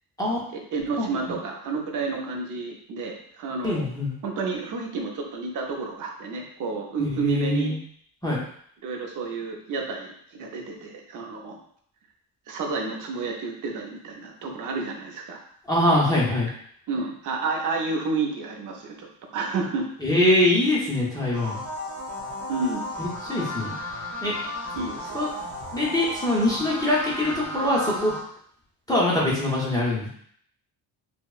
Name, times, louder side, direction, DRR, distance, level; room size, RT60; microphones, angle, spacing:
voice 1, 0.5-3.9 4.2-7.7 8.8-11.6 12.5-15.4 16.9-19.1 19.3-19.9 22.5-22.8 24.7-25.2, right 4 dB, 45° right, 1 dB, 0.6 m, -30 dB
voice 2, 3.6-4.1 7.0-7.8 8.2-8.4 15.7-16.5 20.0-21.6 23.0-23.7 24.2-24.3 25.1-25.3 25.7-28.2 28.9-30.1, left 1 dB, 10° left, -5 dB, 0.5 m, -23 dB
sound 1, 21.3-28.2, left 1 dB, 25° right, 1.2 m, -34 dB
4.5 x 2.0 x 2.3 m, 0.62 s
cardioid pair, 180°, 43 cm